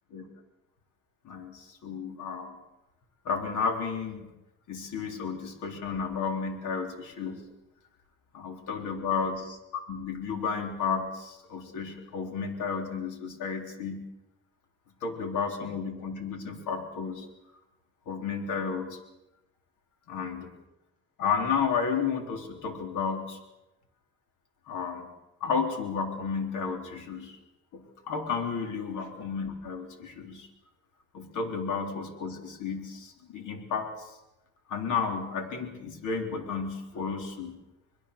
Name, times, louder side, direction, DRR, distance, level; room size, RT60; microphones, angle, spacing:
voice 1, 1.2-2.5 3.3-4.2 4.7-7.4 8.3-9.4 9.9-14.0 15.0-17.3 18.1-19.0 20.1-20.5 21.2-23.4 24.7-25.1 25.4-27.4 27.7-30.5 31.1-34.1 34.7-37.5, left 5 dB, 80° left, 4 dB, 3.9 m, -32 dB
25.5 x 21.0 x 6.8 m, 0.95 s
cardioid pair, 90°, 30 cm